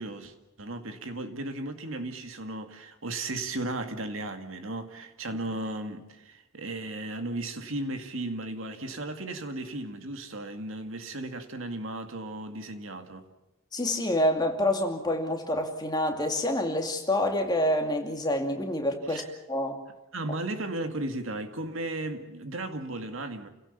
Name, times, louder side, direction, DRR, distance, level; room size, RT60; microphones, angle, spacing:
voice 1, 0.0-13.3 19.1-19.3 20.1-23.5, right 2 dB, 65° right, 2.1 m, -35 dB
voice 2, 13.7-19.8, left 1 dB, 20° left, 2.4 m, -27 dB
29.5 x 17.0 x 7.1 m
head